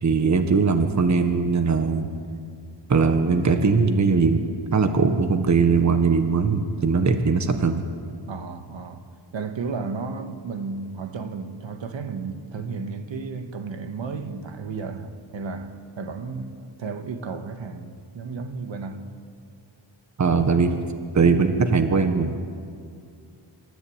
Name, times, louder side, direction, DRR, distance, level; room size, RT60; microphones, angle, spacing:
voice 1, 0.0-2.1 2.9-4.4 4.7-7.9 20.2-20.8 21.1-22.4, right 4 dB, 40° right, 1.5 m, -20 dB
voice 2, 8.3-9.0 9.3-19.1, right 4 dB, 70° right, 1.7 m, -33 dB
28.0 x 14.0 x 8.8 m
wide cardioid pair, 130°, 46 cm